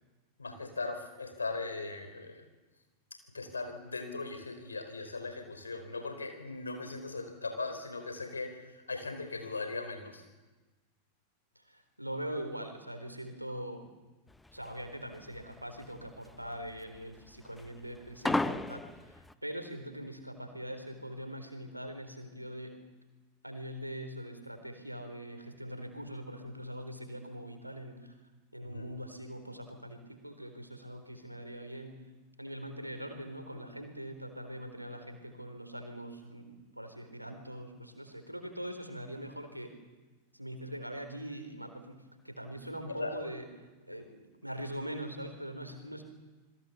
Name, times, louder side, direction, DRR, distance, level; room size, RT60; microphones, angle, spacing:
voice 1, 0.4-2.5 3.3-10.2 28.6-28.9 42.9-43.1 43.9-44.0, left 3 dB, 75° left, 7 dB, 4.4 m, -39 dB
voice 2, 11.6-13.9 14.5-22.8 23.4-28.2 28.5-32.0 32.4-39.8 40.3-46.0, equal, 90° right, 6 dB, 3.9 m, -42 dB
sound 1, 14.3-19.3, left 2 dB, 5° left, 0.9 m, -35 dB
28.0 x 21.5 x 7.1 m, 1.2 s
figure-of-eight pair, 90°, 0 cm